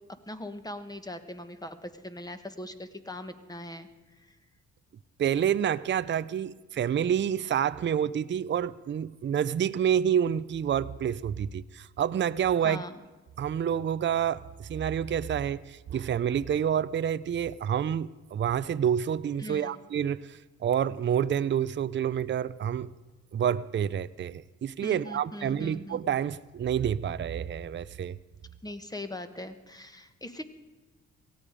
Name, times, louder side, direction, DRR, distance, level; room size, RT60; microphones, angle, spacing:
voice 1, 0.3-3.9 4.2-4.3 12.6-13.0 19.4-19.7 24.8-26.0 28.6-30.4, left 1 dB, 15° left, 9 dB, 1.4 m, -40 dB
voice 2, 5.2-12.8 13.4-22.9 23.3-28.2, right 9 dB, 40° right, 15 dB, 0.5 m, -28 dB
17.5 x 15.5 x 5.1 m, 1.3 s
cardioid pair, 75°, 29 cm